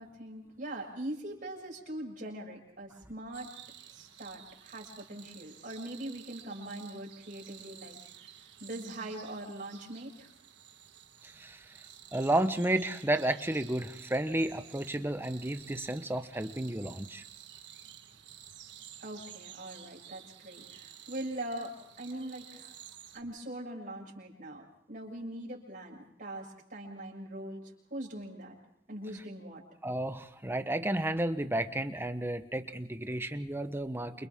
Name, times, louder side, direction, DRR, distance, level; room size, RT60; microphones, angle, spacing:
voice 1, 0.0-3.5 3.9-8.0 8.6-10.3 19.0-22.8 23.1-28.6 28.9-29.6, right 1 dB, 45° right, -2 dB, 7.0 m, -42 dB
sound 1, 3.3-23.2, right 10 dB, 70° right, 1.5 m, -52 dB
voice 2, 11.2-11.8 12.1-17.2 29.8-34.3, right 1 dB, 10° right, 9 dB, 1.0 m, -32 dB
29.5 x 28.5 x 3.7 m, 0.74 s
head